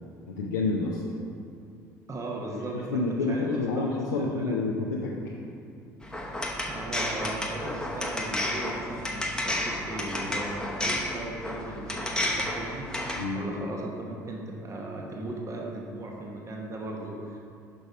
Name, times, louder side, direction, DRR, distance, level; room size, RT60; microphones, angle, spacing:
voice 1, 0.3-1.0 2.7-5.3 13.2-13.5, left 3 dB, 85° left, -4 dB, 0.6 m, -29 dB
voice 2, 2.1-4.6 6.6-17.4, right 2 dB, 35° right, -1 dB, 1.2 m, -37 dB
sound 1, 6.0-13.2, left 1 dB, 10° left, 1.0 m, -32 dB
6.0 x 5.2 x 4.8 m, 2.4 s
hypercardioid pair, 60°, 9 cm